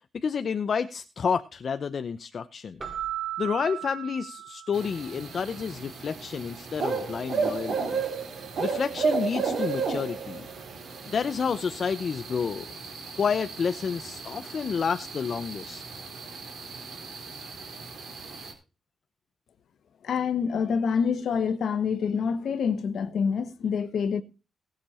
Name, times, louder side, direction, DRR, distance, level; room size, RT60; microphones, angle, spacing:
voice 1, 0.1-2.8 3.4-8.0 8.6-10.4 11.1-12.7 13.2-15.8, left 6 dB, 45° left, 0.7 m, -30 dB
Keyboard (musical), 2.8-5.2, right 12 dB, 30° right, 2.2 m, -36 dB
sound 1, 4.7-18.5, right 5 dB, 65° right, 3.9 m, -34 dB
voice 2, 20.0-24.2, left 6 dB, 65° left, 1.3 m, -26 dB
19.0 x 6.6 x 4.4 m
wide cardioid pair, 135°, 0 cm